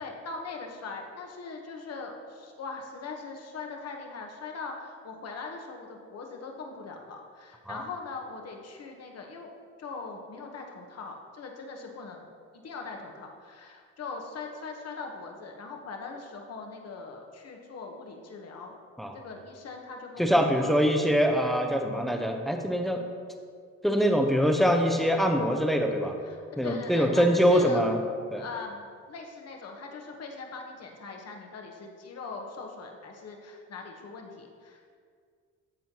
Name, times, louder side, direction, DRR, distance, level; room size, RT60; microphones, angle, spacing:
voice 1, 0.0-9.5 9.8-18.7 19.1-20.7 26.2-27.8 28.4-35.0, left 4 dB, 55° left, 2 dB, 1.2 m, -41 dB
voice 2, 20.2-23.0 23.8-26.2 26.6-28.0 28.3-28.4, equal, ahead, 3 dB, 0.8 m, -24 dB
13.0 x 4.4 x 2.9 m, 2.1 s
cardioid pair, 90°, 30 cm